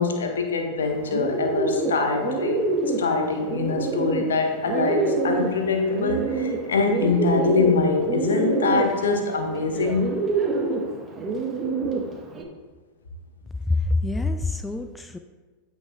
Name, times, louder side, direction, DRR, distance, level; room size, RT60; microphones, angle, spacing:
voice 1, 0.0-2.6 3.0-10.2, left 4 dB, 65° left, 3 dB, 1.3 m, -24 dB
Bird, 0.8-12.4, right 3 dB, 20° right, 1.1 m, -27 dB
voice 2, 13.7-15.2, left 2 dB, 10° left, 8 dB, 0.4 m, -25 dB
13.5 x 6.1 x 2.4 m, 1.4 s
figure-of-eight pair, 90°, 0 cm